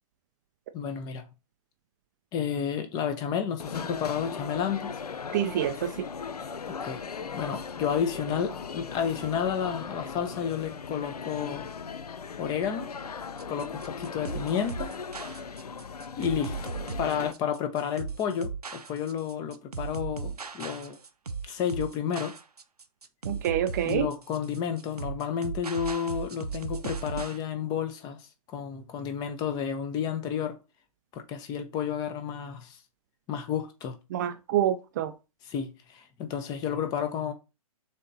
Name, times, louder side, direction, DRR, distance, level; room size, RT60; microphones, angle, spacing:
voice 1, 0.7-1.3 2.3-4.9 6.8-7.0 7.3-11.7 12.4-12.9 13.5-14.9 16.2-21.0 21.5-22.3 23.8-28.2 28.5-30.6 31.1-32.8 33.3-34.0 35.5-37.3, left 8 dB, 20° left, 0.7 m, -31 dB
sound 1, 3.6-17.3, left 5 dB, 85° left, 0.4 m, -38 dB
voice 2, 5.3-6.1 23.2-24.1 34.1-35.1, right 10 dB, 30° right, 0.4 m, -27 dB
sound 2, 13.4-27.4, right 5 dB, 85° right, 0.6 m, -37 dB
6.4 x 3.0 x 2.7 m
figure-of-eight pair, 125°, 19 cm